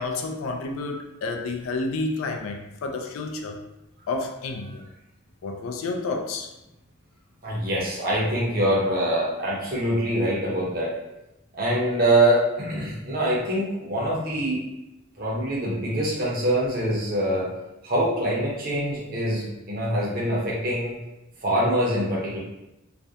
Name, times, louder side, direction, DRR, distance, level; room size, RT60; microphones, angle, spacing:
voice 1, 0.0-3.6 4.1-4.8 5.4-6.5, left 3 dB, 85° left, 3 dB, 0.4 m, -30 dB
voice 2, 7.4-10.9 11.5-14.6 15.2-17.5 17.8-21.0 21.4-22.4, right 1 dB, 45° right, -4 dB, 0.7 m, -24 dB
2.4 x 2.1 x 2.7 m, 0.92 s
head